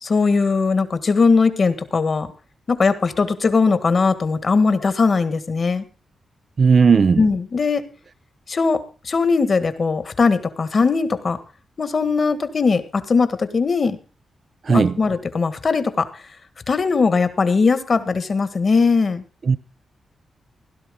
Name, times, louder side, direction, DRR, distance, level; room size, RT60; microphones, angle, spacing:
voice 1, 0.0-2.3 2.7-5.8 7.2-7.8 8.5-11.4 11.8-14.0 14.7-16.1 16.7-19.2, left 4 dB, 40° left, 1.6 m, -19 dB
voice 2, 6.6-7.2 14.6-15.0 19.4-19.6, right 5 dB, 40° right, 0.7 m, -15 dB
16.5 x 12.5 x 3.7 m
wide cardioid pair, 145°, 0 cm